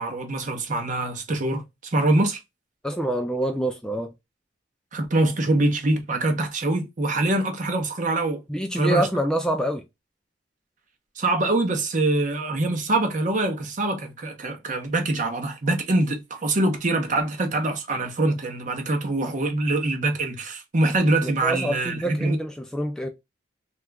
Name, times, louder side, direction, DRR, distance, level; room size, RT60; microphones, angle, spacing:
voice 1, 0.0-2.4 4.9-8.4 8.8-9.1 11.2-22.4, right 2 dB, 45° right, 0.7 m, -24 dB
voice 2, 2.8-4.1 8.5-9.8 21.2-23.1, right 1 dB, 5° left, 0.3 m, -26 dB
2.8 x 2.4 x 3.3 m
head